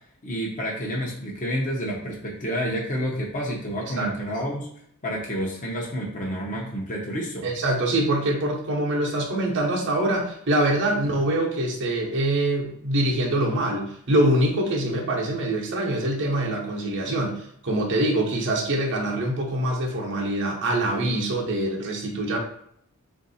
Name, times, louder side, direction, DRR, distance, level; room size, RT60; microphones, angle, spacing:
voice 1, 0.2-4.7 5.0-7.5, equal, 35° left, -3 dB, 0.8 m, -29 dB
voice 2, 7.4-22.4, right 1 dB, 55° right, -1 dB, 0.9 m, -24 dB
3.6 x 2.6 x 4.0 m, 0.70 s
head